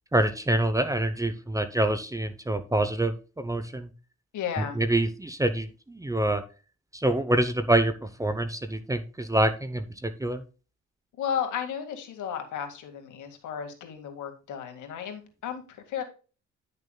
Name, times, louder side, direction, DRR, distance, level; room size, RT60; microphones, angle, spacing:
voice 1, 0.1-3.9 4.8-6.4 6.9-10.4, right 1 dB, 10° right, 10 dB, 0.8 m, -26 dB
voice 2, 4.3-4.8 11.2-16.0, left 8 dB, 80° left, 5 dB, 2.0 m, -34 dB
10.5 x 6.6 x 2.3 m, 0.35 s
cardioid pair, 90°, 30 cm